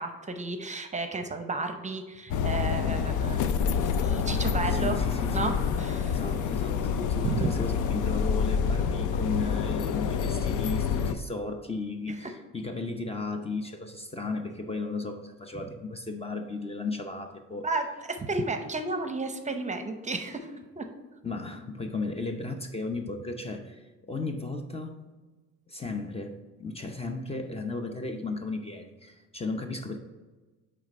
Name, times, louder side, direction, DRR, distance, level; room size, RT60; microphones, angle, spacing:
voice 1, 0.0-4.9 5.3-6.2 7.2-7.5 17.6-20.9, right 3 dB, 25° right, 6 dB, 0.7 m, -33 dB
sound 1, 2.3-11.1, left 7 dB, 80° left, 0.5 m, -27 dB
voice 2, 4.7-5.6 6.1-17.7 21.2-25.1 25.7-30.0, left 3 dB, 20° left, 5 dB, 0.6 m, -35 dB
8.6 x 3.4 x 4.2 m, 1.3 s
cardioid pair, 90°, 30 cm